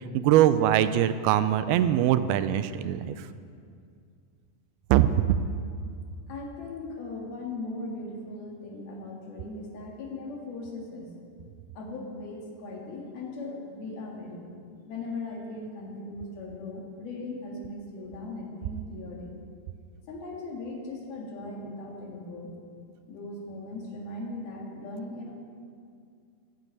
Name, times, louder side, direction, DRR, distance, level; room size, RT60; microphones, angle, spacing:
voice 1, 0.1-3.1 4.9-5.4, right 11 dB, 85° right, 12 dB, 2.4 m, -22 dB
voice 2, 6.3-11.2 11.8-14.5 14.9-19.4 20.1-22.6 23.1-25.3, left 2 dB, 75° left, -1 dB, 4.0 m, -38 dB
13.0 x 9.4 x 8.6 m, 2.3 s
omnidirectional pair, 4.4 m